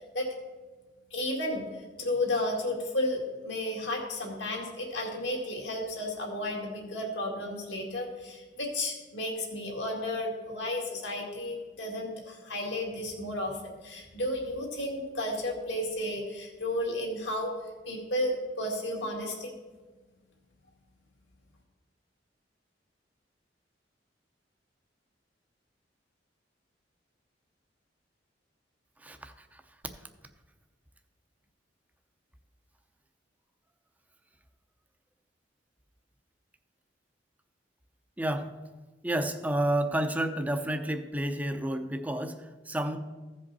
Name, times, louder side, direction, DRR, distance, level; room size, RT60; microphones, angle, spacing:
voice 1, 1.1-17.5 17.9-19.5, left 1 dB, 75° left, 0 dB, 2.2 m, -33 dB
voice 2, 29.0-29.3 38.2-38.5 39.0-42.4 42.7-43.0, right 1 dB, 10° right, 7 dB, 0.6 m, -30 dB
15.5 x 5.3 x 4.1 m, 1.3 s
head